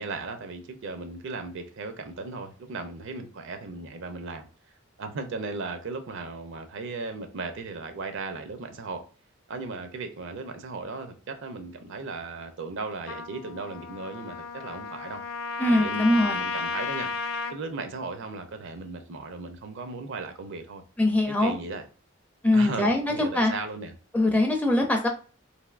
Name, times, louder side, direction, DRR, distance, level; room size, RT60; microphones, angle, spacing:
voice 1, 0.0-4.5 5.0-9.1 9.5-15.2 15.7-17.1 17.5-20.8 21.3-21.9 22.5-23.9, right 3 dB, 60° right, 0.5 m, -36 dB
Trumpet, 13.1-17.6, left 4 dB, 65° left, 0.4 m, -33 dB
voice 2, 15.6-16.4 21.0-21.6 22.4-23.5 24.1-25.1, left 1 dB, 10° left, 0.4 m, -22 dB
3.3 x 2.5 x 2.4 m
head